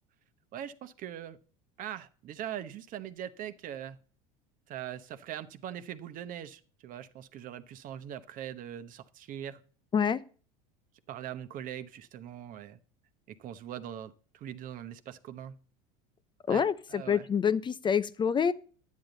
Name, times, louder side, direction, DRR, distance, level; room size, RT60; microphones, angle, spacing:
voice 1, 0.5-1.4 1.8-4.0 4.7-9.6 11.1-12.8 13.3-15.5 16.5-16.6 16.9-17.3, right 10 dB, 50° right, 10 dB, 1.0 m, -41 dB
voice 2, 9.9-10.2 16.5-18.5, left 7 dB, 25° left, 14 dB, 0.6 m, -27 dB
10.5 x 9.5 x 4.0 m, 0.41 s
hypercardioid pair, 90°, 18 cm